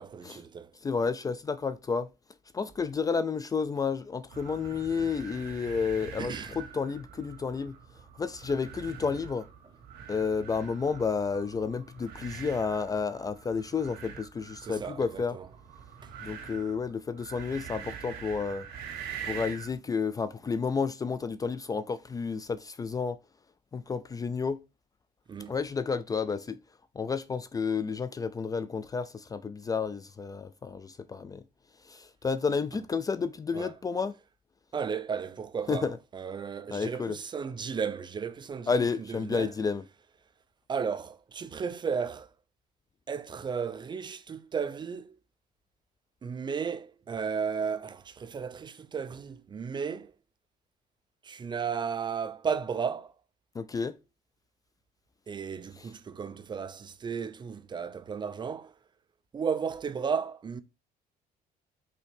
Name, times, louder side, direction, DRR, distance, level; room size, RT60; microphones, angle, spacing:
voice 1, 0.0-0.7 6.2-6.6 14.6-15.5 25.3-25.5 33.5-33.7 34.7-35.9 36.1-39.5 40.7-42.3 43.1-45.2 46.2-50.1 51.2-53.1 55.3-58.7 59.3-60.6, right 6 dB, 30° right, 0.5 m, -34 dB
voice 2, 0.8-2.1 2.5-7.7 8.2-9.5 10.1-15.3 16.2-18.7 19.3-23.2 23.7-24.6 25.5-26.6 27.0-31.4 31.9-34.2 35.7-35.9 36.7-37.2 38.7-39.8 53.6-53.9, left 5 dB, 20° left, 0.4 m, -31 dB
sound 1, 4.3-19.8, right 8 dB, 80° right, 2.1 m, -44 dB
5.6 x 3.8 x 5.1 m
cardioid pair, 130°, 17 cm